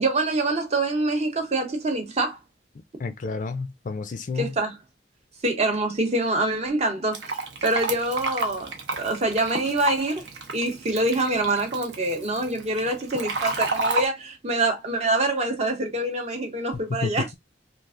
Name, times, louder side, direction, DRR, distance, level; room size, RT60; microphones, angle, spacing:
voice 1, 0.0-2.4 4.4-4.8 5.4-10.3 10.5-17.3, right 2 dB, 35° right, 0.8 m, -25 dB
voice 2, 3.0-4.5 17.0-17.3, left 4 dB, 45° left, 0.4 m, -30 dB
Fill (with liquid), 7.1-14.0, right 3 dB, 65° right, 0.7 m, -31 dB
3.2 x 2.4 x 2.4 m
head